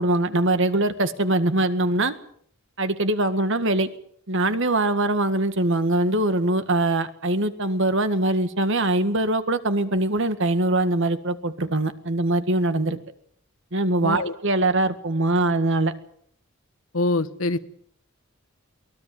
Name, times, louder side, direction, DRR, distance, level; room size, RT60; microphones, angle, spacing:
voice 1, 0.0-2.1 2.8-3.9 4.3-13.0 13.7-15.9, right 2 dB, 65° right, 11 dB, 1.8 m, -22 dB
voice 2, 14.0-14.4 16.9-17.6, left 2 dB, 85° left, 11 dB, 1.4 m, -24 dB
23.5 x 18.5 x 7.8 m, 0.63 s
head